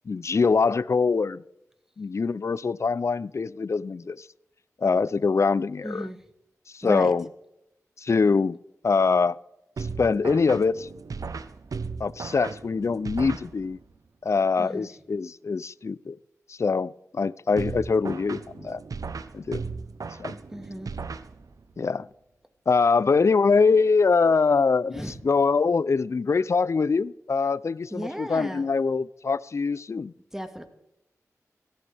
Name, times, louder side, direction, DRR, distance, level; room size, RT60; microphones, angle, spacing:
voice 1, 0.1-1.4 2.0-4.2 4.8-6.1 6.7-7.2 8.0-8.6 8.8-9.4 10.0-10.9 12.0-13.8 14.2-16.2 16.5-18.8 19.3-19.6 20.2-20.4 21.8-22.1 22.7-30.1, left 4 dB, 55° left, 0.4 m, -23 dB
voice 2, 5.8-6.2 6.8-7.1 14.6-14.9 20.5-20.9 24.9-25.2 27.9-28.7 30.3-30.6, equal, 10° right, 1.8 m, -34 dB
sound 1, 9.8-14.0 17.6-21.8, right 4 dB, 80° right, 0.8 m, -36 dB
17.5 x 13.5 x 3.4 m
wide cardioid pair, 60°, 6 cm